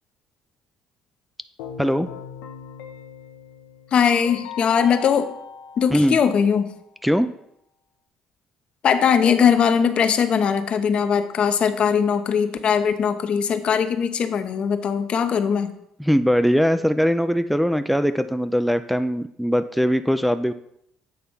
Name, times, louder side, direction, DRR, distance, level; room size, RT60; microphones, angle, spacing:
Keyboard (musical), 1.6-6.6, left 6 dB, 85° left, 0.8 m, -39 dB
voice 1, 1.8-2.1 5.9-6.2 7.0-7.3 16.0-20.5, equal, ahead, 10 dB, 0.4 m, -21 dB
voice 2, 3.9-5.3 5.8-6.7 8.8-15.7, left 7 dB, 55° left, 9 dB, 0.7 m, -20 dB
8.6 x 3.3 x 5.5 m, 0.77 s
hypercardioid pair, 65°, 2 cm